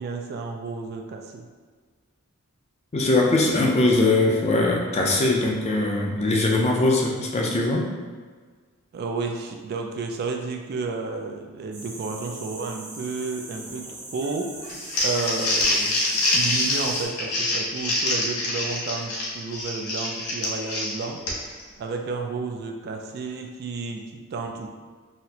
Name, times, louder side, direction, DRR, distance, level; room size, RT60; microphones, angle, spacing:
voice 1, 0.0-1.4 8.9-16.0 16.3-21.5 21.8-24.7, right 4 dB, 45° right, 2 dB, 0.3 m, -32 dB
voice 2, 2.9-7.8, left 2 dB, 30° left, -1 dB, 0.4 m, -21 dB
sound 1, 11.7-17.0, right 2 dB, 85° right, 1.3 m, -40 dB
Crumpling crinkling, 14.7-21.6, left 1 dB, 85° left, 0.7 m, -25 dB
4.1 x 2.0 x 2.7 m, 1.5 s
head